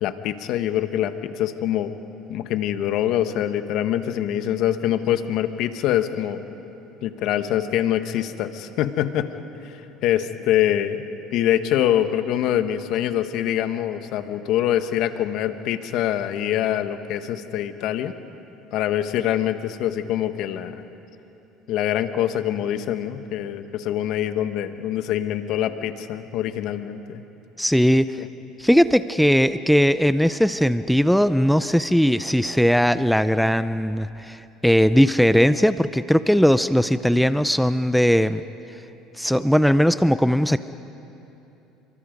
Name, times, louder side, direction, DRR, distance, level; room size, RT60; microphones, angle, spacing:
voice 1, 0.0-1.9 2.3-6.4 7.0-9.3 9.6-11.0 11.3-18.1 18.7-20.8 21.7-27.2 28.2-28.3, left 11 dB, 65° left, 9 dB, 1.3 m, -24 dB
voice 2, 27.6-28.2 28.6-38.4 39.2-40.6, equal, ahead, 13 dB, 0.5 m, -19 dB
29.5 x 23.5 x 5.3 m, 3.0 s
supercardioid pair, 110°, 0 cm